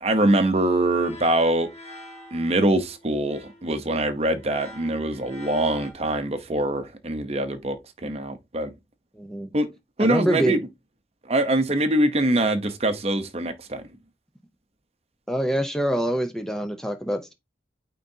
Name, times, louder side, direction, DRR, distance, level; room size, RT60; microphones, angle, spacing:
voice 1, 0.0-1.7 2.3-7.8 8.0-8.7 9.5-9.7 10.0-10.6 11.3-13.8, right 1 dB, 35° right, 0.8 m, -23 dB
sound 1, 0.9-5.9, left 1 dB, 35° left, 1.6 m, -45 dB
voice 2, 9.1-9.5 10.0-10.6 15.3-17.3, equal, 5° left, 0.6 m, -25 dB
9.2 x 3.8 x 2.7 m
head